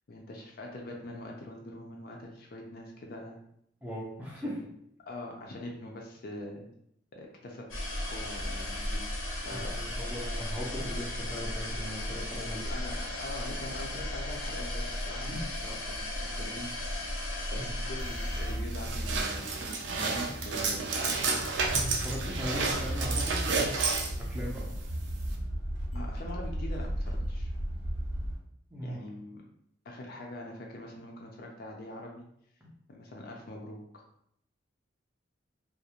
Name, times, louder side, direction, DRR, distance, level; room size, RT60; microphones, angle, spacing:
voice 1, 0.1-3.4 4.3-4.7 5.1-6.7 7.1-7.7 8.1-9.1 9.4-10.2 12.7-15.3 15.6-16.7 17.5-19.6 19.9-20.2 20.4-20.8 25.9-27.5 28.8-29.4 29.8-32.2 32.9-34.0, left 1 dB, 50° left, 0 dB, 0.4 m, -43 dB
voice 2, 3.8-4.5 9.5-12.8 15.3-15.4 17.6-17.7 21.6-23.4 24.2-24.7 28.7-29.1 32.6-32.7, equal, 5° right, -4 dB, 0.5 m, -38 dB
sound 1, 7.7-19.2, left 1 dB, 90° left, 0.7 m, -35 dB
sound 2, 18.0-25.4, right 3 dB, 60° right, 0.4 m, -31 dB
sound 3, 21.6-28.4, equal, 90° right, 0.7 m, -35 dB
2.4 x 2.0 x 2.8 m, 0.72 s
head